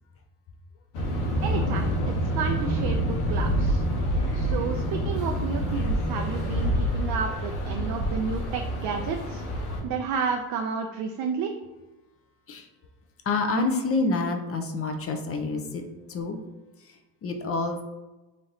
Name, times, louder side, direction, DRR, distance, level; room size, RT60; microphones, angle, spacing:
sound 1, 0.9-9.8, equal, 75° left, 1.2 m, -27 dB
voice 1, 1.4-3.8 4.3-9.4 9.8-11.5, right 6 dB, 60° right, 4 dB, 0.5 m, -31 dB
voice 2, 13.2-15.8 16.1-16.4 16.8-17.8, left 3 dB, 35° left, 5 dB, 0.6 m, -28 dB
3.1 x 2.7 x 3.9 m, 1.1 s
cardioid pair, 95°, 41 cm